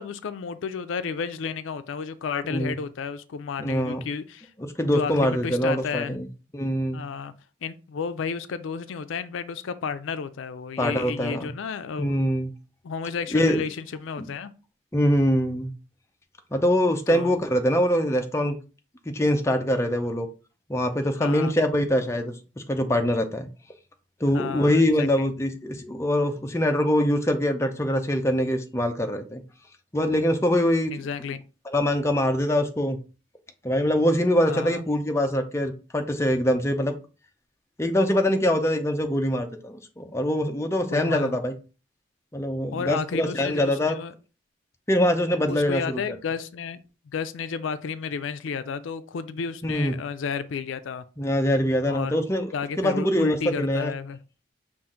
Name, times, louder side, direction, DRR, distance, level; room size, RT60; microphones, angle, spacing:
voice 1, 0.0-4.5 4.9-6.2 6.9-7.3 7.6-12.2 12.8-14.5 17.1-17.4 21.2-21.5 24.3-25.3 30.9-31.4 34.5-34.8 40.9-41.3 42.7-44.1 45.5-46.8 47.1-51.0 51.5-52.2 52.5-54.2, left 6 dB, 85° left, 0.4 m, -32 dB
voice 2, 3.6-4.0 4.8-6.3 6.5-7.0 10.8-11.5 12.0-12.5 13.3-13.6 14.2-14.3 14.9-15.7 16.5-18.6 19.1-20.3 20.7-23.5 24.2-29.4 29.9-30.9 31.7-33.0 33.6-36.9 37.8-41.5 42.3-44.0 44.9-46.2 49.6-49.9 51.2-52.5 52.8-53.9, equal, 15° left, 0.4 m, -23 dB
5.6 x 2.5 x 3.7 m
head